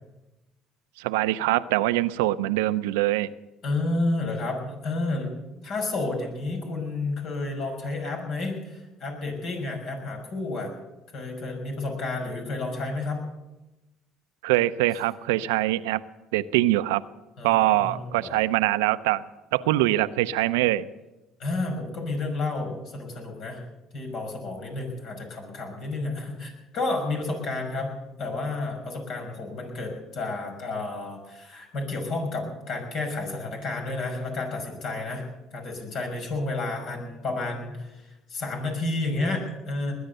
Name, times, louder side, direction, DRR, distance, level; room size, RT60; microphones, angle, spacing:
voice 1, 1.0-3.3 14.4-16.0 16.3-17.0 17.4-19.2 19.5-20.9, right 16 dB, 85° right, 14 dB, 0.5 m, -23 dB
voice 2, 3.6-10.7 11.1-13.2 17.4-18.4 21.4-23.6 23.9-27.9 28.2-35.2 35.5-39.9, left 2 dB, 60° left, 3 dB, 5.7 m, -31 dB
20.5 x 10.0 x 6.7 m, 1.0 s
supercardioid pair, 70°, 0 cm